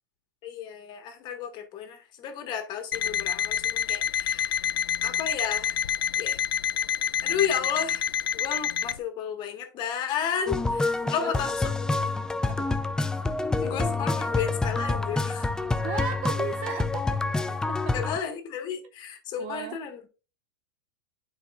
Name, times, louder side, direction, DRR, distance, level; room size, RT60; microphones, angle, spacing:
voice 1, 0.4-5.8 6.1-6.4 7.2-8.1 8.3-11.7 13.6-15.5 17.9-20.0, left 8 dB, 40° left, 1.7 m, -33 dB
Alarm, 2.9-9.0, left 9 dB, 90° left, 0.4 m, -28 dB
sound 1, 10.5-18.2, left 3 dB, 5° left, 0.4 m, -27 dB
voice 2, 12.5-12.8 15.8-17.2 17.7-18.0 19.4-19.8, right 8 dB, 45° right, 0.6 m, -36 dB
10.0 x 4.9 x 2.5 m
hypercardioid pair, 120°, 12 cm